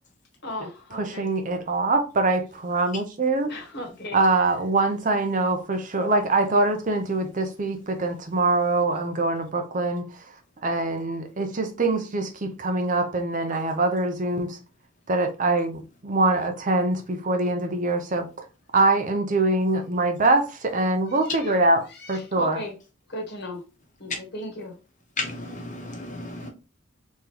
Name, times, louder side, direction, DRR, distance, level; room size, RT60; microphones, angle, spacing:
voice 1, 0.4-1.3 3.5-4.2 21.1-21.2 21.9-22.7 23.1-23.6 24.0-24.7, left 1 dB, 55° left, 1.3 m, -36 dB
voice 2, 0.9-3.5 4.1-10.3 10.6-14.6 15.1-18.5 18.7-21.8 22.1-22.6, right 2 dB, 40° right, 0.5 m, -24 dB
voice 3, 25.2-26.5, left 3 dB, 35° left, 1.1 m, -33 dB
3.8 x 3.1 x 2.8 m
head